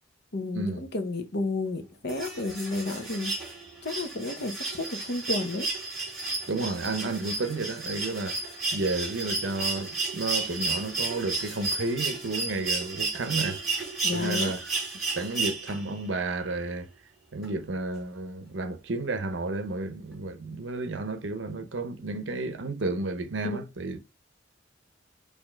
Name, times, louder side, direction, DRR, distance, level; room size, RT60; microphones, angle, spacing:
voice 1, 0.3-3.5 3.8-5.7 14.0-14.5 23.4-23.6, left 2 dB, 60° left, 0.8 m, -32 dB
sound 1, 2.1-16.0 17.4-17.5, right 3 dB, ahead, 2.3 m, -32 dB
voice 2, 6.5-8.4 8.7-13.6 14.1-14.7 15.1-16.9 17.3-24.0, right 2 dB, 75° right, 0.7 m, -32 dB
4.5 x 2.7 x 4.4 m
head